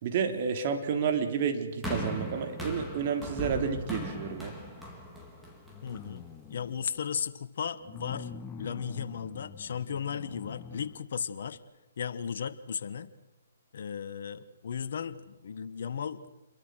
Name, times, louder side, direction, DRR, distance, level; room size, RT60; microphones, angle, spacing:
voice 1, 0.0-4.5, right 6 dB, 45° right, 6 dB, 3.4 m, -30 dB
sound 1, 1.8-6.2 7.0-7.1, equal, 5° right, 4.1 m, -38 dB
sound 2, 5.6-6.9 7.8-11.0 11.5-11.6, left 6 dB, 15° left, 1.5 m, -45 dB
voice 2, 5.8-8.3 8.6-11.6 12.0-13.1 13.7-16.3, left 7 dB, 60° left, 10 dB, 1.4 m, -35 dB
28.0 x 22.5 x 6.5 m, 1.0 s
hypercardioid pair, 140°, 0 cm